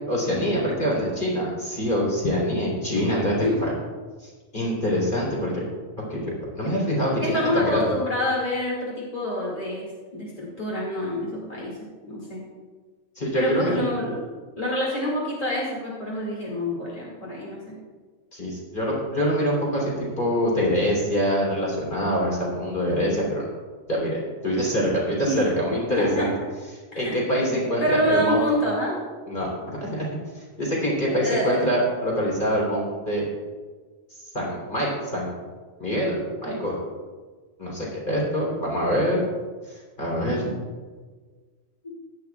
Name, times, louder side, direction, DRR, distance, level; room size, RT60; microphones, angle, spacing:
voice 1, 0.1-3.3 3.6-3.7 4.2-5.6 6.1-7.9 13.2-13.8 18.3-23.5 23.9-26.3 26.9-28.4 29.3-30.1 30.3-33.2 34.3-35.3 35.8-36.7 37.6-39.2 40.0-40.5, equal, 15° left, -4 dB, 2.8 m, -25 dB
voice 2, 7.2-9.9 10.1-11.7 12.0-12.4 13.3-14.2 14.6-17.7 25.3-25.5 25.9-26.3 26.9-28.9 31.1-31.7, left 1 dB, 35° left, -5 dB, 0.6 m, -27 dB
16.0 x 11.5 x 2.4 m, 1.4 s
omnidirectional pair, 4.8 m